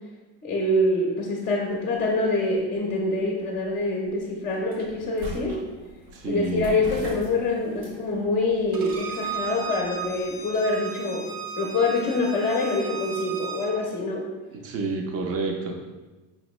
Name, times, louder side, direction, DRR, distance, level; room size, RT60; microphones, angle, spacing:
voice 1, 0.4-5.6 6.2-11.3 11.6-14.3, left 2 dB, 25° left, -1 dB, 0.6 m, -25 dB
sound 1, 1.5-10.6, equal, 85° right, 1.5 m, -43 dB
voice 2, 6.1-6.7 14.5-15.8, right 3 dB, 40° right, 2 dB, 0.7 m, -29 dB
Bowed string instrument, 8.7-13.7, right 6 dB, 65° right, 1.1 m, -35 dB
5.2 x 2.9 x 3.0 m, 1.2 s
supercardioid pair, 135°, 37 cm